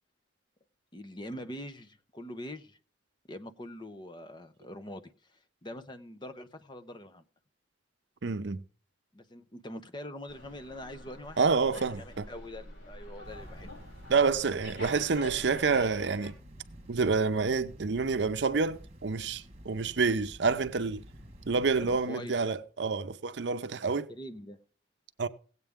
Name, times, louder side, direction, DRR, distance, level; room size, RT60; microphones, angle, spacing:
voice 1, 0.9-2.8 3.3-5.0 5.3-7.2 9.1-13.7 21.8-22.5 24.1-24.6, left 1 dB, 25° left, 0.8 m, -44 dB
voice 2, 8.2-8.6 11.4-12.3 14.1-16.3 16.9-21.0 21.5-24.1 25.2-25.3, right 4 dB, 65° right, 0.6 m, -28 dB
Slam, 10.3-16.3, left 1 dB, 85° left, 4.4 m, -47 dB
sound 1, 13.2-22.0, equal, 35° right, 1.5 m, -50 dB
17.5 x 8.2 x 3.6 m
head